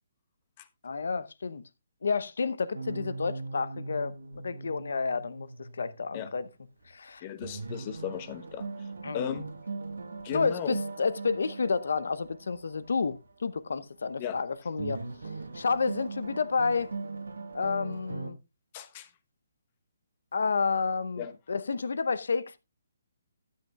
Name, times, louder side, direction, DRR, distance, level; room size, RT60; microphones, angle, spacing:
voice 1, 0.8-1.6 2.0-6.5 6.9-7.2 9.0-9.4 10.3-15.0 15.5-16.9 17.5-18.4 20.3-22.6, left 4 dB, 75° left, 0.8 m, -30 dB
sound 1, 2.7-6.5 6.8-6.9 7.4-13.3 14.8-18.3, right 3 dB, 85° right, 1.6 m, -40 dB
voice 2, 7.2-8.7 9.1-9.5 10.2-10.8 14.2-14.4 18.7-19.1 21.2-21.3, left 9 dB, 35° left, 1.0 m, -36 dB
13.0 x 8.6 x 2.3 m
hypercardioid pair, 150°, 0 cm